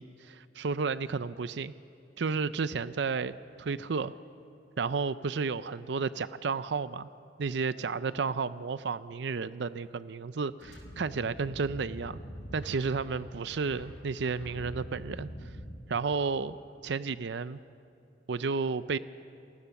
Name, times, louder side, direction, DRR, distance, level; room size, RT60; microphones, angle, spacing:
voice 1, 0.0-1.7 2.2-4.1 4.8-7.1 7.4-12.2 12.5-15.3 15.9-16.6 16.8-17.6 18.3-19.0, right 4 dB, 65° right, 14 dB, 0.5 m, -32 dB
sound 1, 10.6-15.7, equal, 80° left, 6.4 m, -44 dB
29.0 x 18.0 x 7.1 m, 2.6 s
head